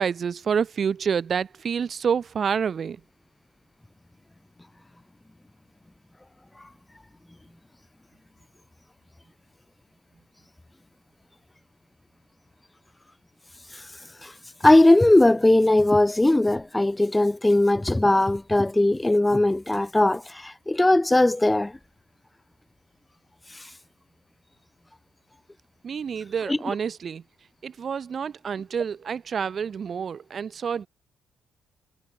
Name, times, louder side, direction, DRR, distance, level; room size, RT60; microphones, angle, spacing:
voice 1, 0.0-3.0 25.8-27.2 27.6-30.9, right 7 dB, 50° right, 3.9 m, -28 dB
voice 2, 14.6-21.8 23.5-23.7 26.5-26.6, left 1 dB, 10° left, 0.6 m, -19 dB
cardioid pair, 90°, 0 cm